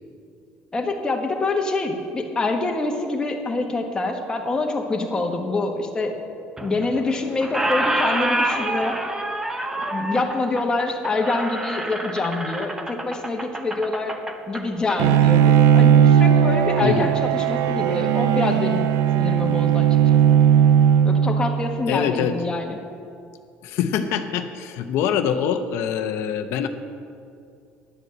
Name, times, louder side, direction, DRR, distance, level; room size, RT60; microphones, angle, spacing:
voice 1, 0.7-6.2 6.6-9.0 9.9-14.1 14.5-18.9 19.2-19.9 20.3-20.4 21.0-22.8, left 3 dB, 20° left, 2 dB, 1.3 m, -26 dB
Squeak, 6.6-7.1 7.4-15.0, right 1 dB, 10° right, 0.8 m, -27 dB
Bowed string instrument, 15.0-21.7, right 9 dB, 80° right, 0.5 m, -17 dB
voice 2, 16.8-17.1 21.9-22.4 23.6-26.7, left 8 dB, 70° left, 8 dB, 0.8 m, -24 dB
11.0 x 8.0 x 7.7 m, 2.4 s
cardioid pair, 145°, 4 cm